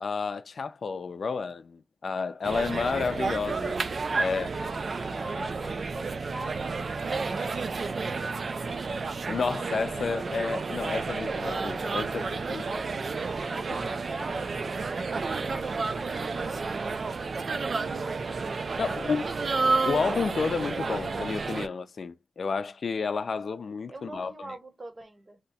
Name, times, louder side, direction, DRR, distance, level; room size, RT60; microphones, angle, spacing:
voice 1, 0.0-3.8 4.2-4.5 9.3-12.7 18.8-19.3 19.9-24.3, left 5 dB, 80° left, 0.4 m, -31 dB
sound 1, 2.4-21.7, right 4 dB, 70° right, 0.3 m, -31 dB
voice 2, 4.2-9.0 12.6-15.7 16.0-18.4 18.9-19.7 23.9-25.4, right 2 dB, 35° right, 0.8 m, -44 dB
2.8 x 2.2 x 4.0 m
wide cardioid pair, 105°, 0 cm